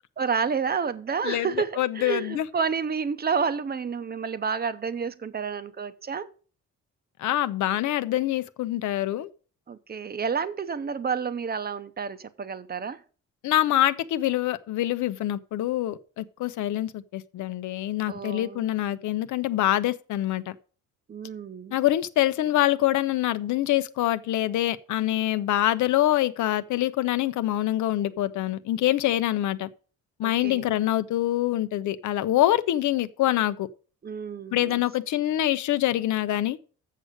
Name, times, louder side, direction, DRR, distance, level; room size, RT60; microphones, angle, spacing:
voice 1, 0.2-6.3 9.7-13.0 18.1-18.7 21.1-21.8 30.2-30.7 34.0-34.8, right 6 dB, 30° right, 0.8 m, -30 dB
voice 2, 1.8-2.5 7.2-9.3 13.4-20.5 21.7-29.7 30.2-33.7 34.5-36.6, left 14 dB, 75° left, 0.7 m, -25 dB
7.6 x 6.5 x 6.4 m
cardioid pair, 90°, 30 cm